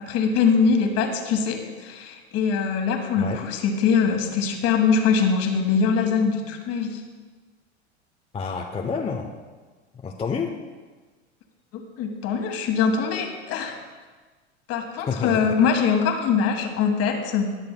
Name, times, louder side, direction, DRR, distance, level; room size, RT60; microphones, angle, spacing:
voice 1, 0.0-7.0 11.7-13.8 14.7-17.6, left 6 dB, 45° left, 4 dB, 1.5 m, -23 dB
voice 2, 8.3-9.3 10.0-10.5 15.1-15.5, left 5 dB, 15° left, 1 dB, 0.6 m, -28 dB
18.5 x 6.7 x 2.2 m, 1.4 s
hypercardioid pair, 95°, 34 cm